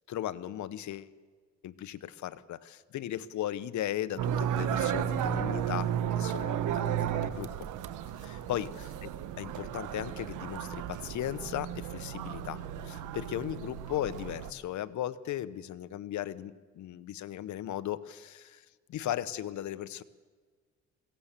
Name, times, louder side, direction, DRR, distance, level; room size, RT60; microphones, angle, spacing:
voice 1, 0.1-1.1 1.6-5.9 6.2-7.5 8.5-9.1 9.4-20.0, left 12 dB, 70° left, 13 dB, 1.0 m, -37 dB
sound 1, 4.2-14.5, right 9 dB, 85° right, 1.3 m, -34 dB
22.0 x 17.0 x 7.5 m, 1.5 s
cardioid pair, 90°, 30 cm